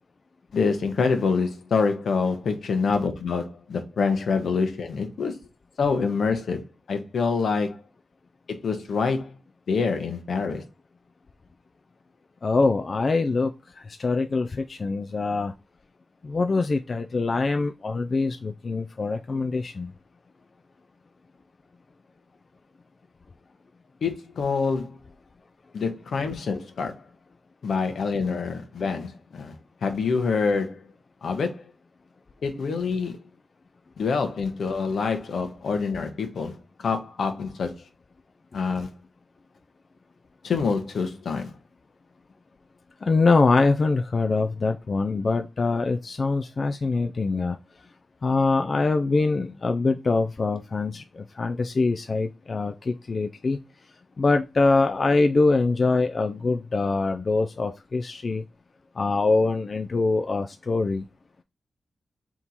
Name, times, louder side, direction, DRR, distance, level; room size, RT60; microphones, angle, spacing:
voice 1, 0.5-5.3 5.8-7.8 8.6-9.3 9.7-10.6 24.0-24.9 25.7-26.9 27.6-29.5 29.8-30.8 31.2-31.6 32.4-33.2 34.0-36.5 36.8-37.7 38.5-38.9 40.4-41.5, left 5 dB, 80° left, 0.8 m, -26 dB
voice 2, 12.4-15.5 16.2-19.9 43.0-47.6 48.2-53.6 54.2-58.4 59.0-61.0, left 3 dB, 50° left, 0.3 m, -24 dB
3.6 x 3.0 x 3.9 m
cardioid pair, 65°, 0 cm